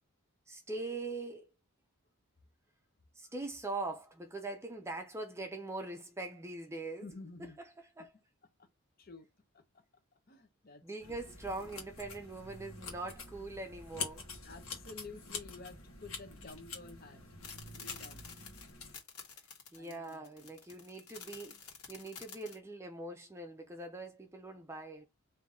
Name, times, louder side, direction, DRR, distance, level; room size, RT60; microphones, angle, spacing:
voice 1, 0.5-1.5 3.1-7.0 8.0-8.1 10.8-14.3 19.7-25.1, right 2 dB, 10° right, 0.5 m, -42 dB
voice 2, 7.0-7.6 8.6-8.7 9.0-9.3 9.5-9.8 10.3-11.2 14.4-17.2 17.8-18.3 19.8-20.5, left 3 dB, 40° left, 0.9 m, -51 dB
sound 1, 11.0-18.9, left 4 dB, 70° left, 1.4 m, -46 dB
sound 2, 17.4-22.6, left 6 dB, 90° left, 1.4 m, -50 dB
3.8 x 2.8 x 3.6 m
head